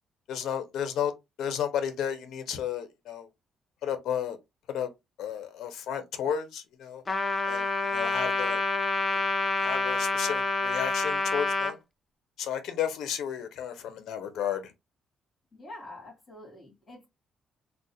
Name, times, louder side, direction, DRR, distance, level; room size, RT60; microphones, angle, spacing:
voice 1, 0.3-1.1 1.4-3.3 3.8-4.4 4.7-4.9 5.2-7.0 7.5-8.6 9.1-9.2 9.6-11.8 12.4-14.7, left 9 dB, 75° left, 0.5 m, -32 dB
Trumpet, 7.1-11.7, left 3 dB, 30° left, 0.4 m, -28 dB
voice 2, 15.5-17.1, left 1 dB, 45° left, 1.9 m, -46 dB
3.6 x 2.1 x 2.7 m
cardioid pair, 90°, 0 cm